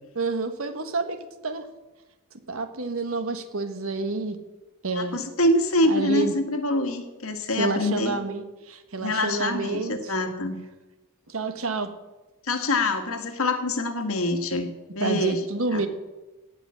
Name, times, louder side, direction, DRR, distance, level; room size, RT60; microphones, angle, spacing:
voice 1, 0.1-1.2 1.4-1.6 2.5-4.4 4.8-5.2 5.8-6.3 7.6-10.1 11.3-11.9 15.0-15.9, right 3 dB, 70° right, 8 dB, 1.3 m, -28 dB
voice 2, 4.9-8.2 9.0-10.6 12.4-15.4 15.7-15.8, left 1 dB, 75° left, 6 dB, 1.7 m, -25 dB
17.0 x 5.8 x 8.6 m, 1.1 s
head